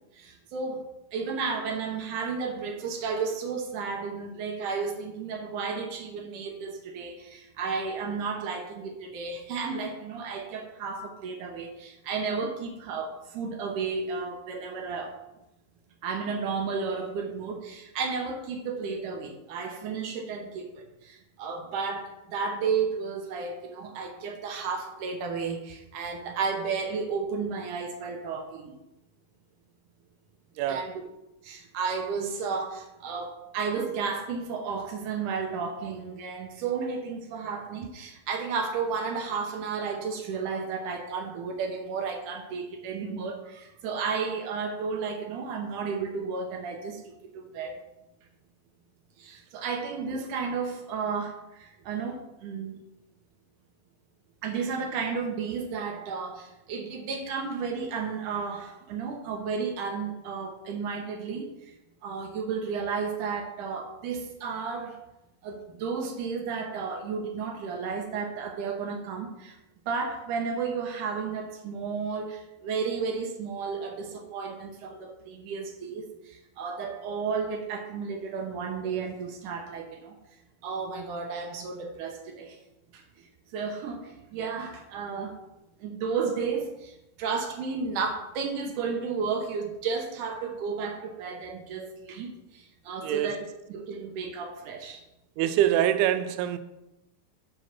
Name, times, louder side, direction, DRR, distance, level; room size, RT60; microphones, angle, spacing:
voice 1, 0.1-0.8 1.1-15.1 16.0-28.7 30.7-30.9 31.4-47.8 49.2-52.8 54.4-61.7 62.0-65.0 65.4-69.6 69.9-80.2 80.6-82.6 82.9-83.0 83.5-85.4 85.8-95.0, right 5 dB, 70° right, 2.0 m, -33 dB
voice 2, 93.0-93.3 95.4-96.6, right 11 dB, 90° right, 2.6 m, -24 dB
7.8 x 5.1 x 5.9 m
omnidirectional pair, 4.5 m